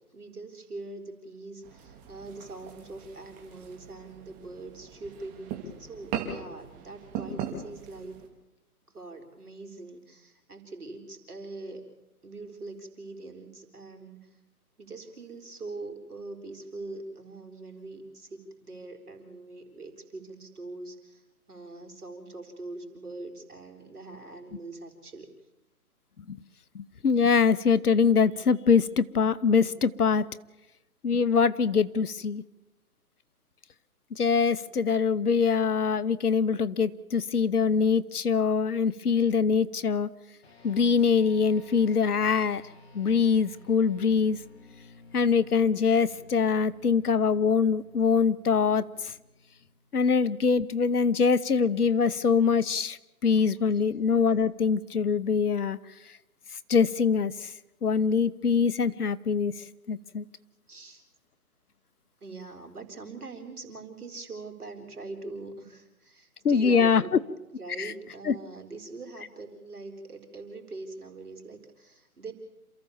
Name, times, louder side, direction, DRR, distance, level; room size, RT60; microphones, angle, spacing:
voice 1, 0.1-8.2 8.9-11.9 12.2-14.3 14.8-25.3 53.7-53.8 60.7-61.0 62.2-67.2 67.6-72.3, right 3 dB, 85° right, 2 dB, 4.3 m, -42 dB
sound 1, 1.6-8.3, right 7 dB, 20° right, 2.4 m, -40 dB
voice 2, 26.7-30.2 31.0-32.4 34.2-40.1 40.6-42.6 42.9-44.4 45.1-49.1 49.9-53.0 53.2-55.8 56.7-57.5 57.8-59.5 59.9-60.2 66.4-67.0 67.8-67.9 68.2-68.3, left 5 dB, 85° left, 16 dB, 1.1 m, -23 dB
sound 2, 40.4-50.1, left 3 dB, 45° left, 3.2 m, -53 dB
28.0 x 15.0 x 7.2 m, 0.99 s
hypercardioid pair, 150°, 44 cm